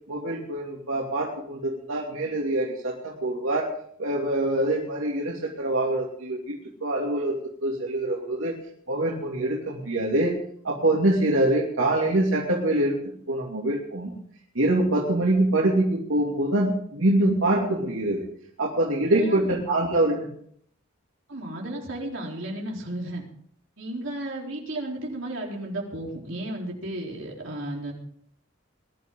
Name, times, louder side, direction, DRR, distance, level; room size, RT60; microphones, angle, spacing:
voice 1, 0.1-3.7 4.0-6.5 6.8-7.4 7.6-8.5 8.9-10.3 10.6-13.0 13.3-14.1 14.5-18.3 18.6-20.3, right 1 dB, 90° right, -3 dB, 2.8 m, -24 dB
voice 2, 19.1-19.5 21.3-23.2 23.8-27.9, right 1 dB, 70° right, -2 dB, 4.1 m, -33 dB
21.0 x 12.0 x 3.9 m, 0.64 s
head